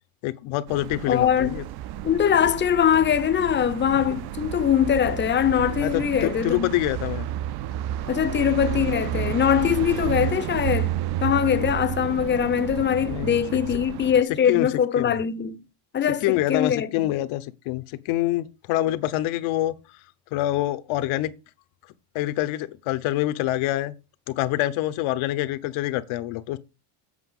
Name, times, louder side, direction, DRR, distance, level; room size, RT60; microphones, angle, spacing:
voice 1, 0.2-1.6 5.8-7.3 11.5-11.7 13.1-13.4 14.5-14.7 15.0-15.1 16.2-19.7 20.3-21.3 22.1-23.9 24.3-26.6, left 15 dB, 75° left, 1.1 m, -26 dB
sound 1, 0.7-14.2, right 12 dB, 50° right, 0.7 m, -31 dB
voice 2, 1.1-1.6 2.0-6.7 8.1-10.9 11.2-15.6 15.9-16.9, left 9 dB, 25° left, 0.6 m, -22 dB
8.1 x 5.7 x 5.5 m
cardioid pair, 140°, 49 cm